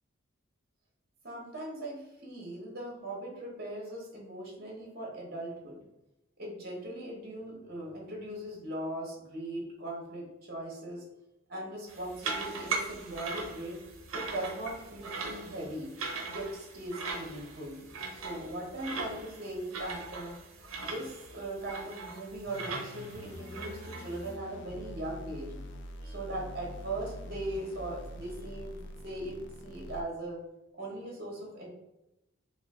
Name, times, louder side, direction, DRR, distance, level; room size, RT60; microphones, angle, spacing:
voice 1, 1.2-5.8 6.4-11.0 11.5-13.8 14.1-15.9 16.3-17.8 18.1-20.3 20.8-25.5 26.0-30.4 30.8-31.7, right 1 dB, 45° right, -2 dB, 1.0 m, -39 dB
sound 1, 11.9-24.3, right 4 dB, 75° right, 0.6 m, -40 dB
sound 2, 22.5-30.0, left 1 dB, 55° left, 0.4 m, -45 dB
3.0 x 2.4 x 3.6 m, 0.90 s
head